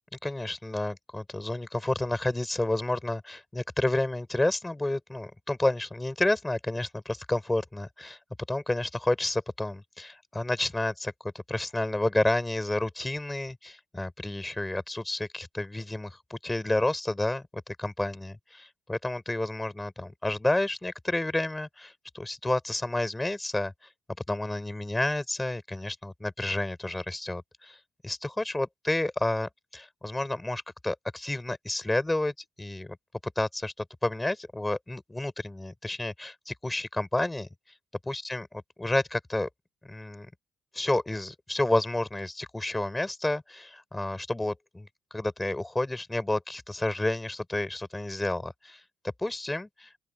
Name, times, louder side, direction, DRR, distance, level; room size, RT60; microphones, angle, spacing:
voice 1, 0.2-8.2 8.5-11.1 11.5-23.7 24.3-27.8 28.0-33.0 33.3-37.5 38.0-38.5 38.8-39.5 39.8-40.3 40.7-48.8 49.2-49.9, left 2 dB, 10° left, 6.5 m, -30 dB
open air
cardioid pair, 90°, 0 cm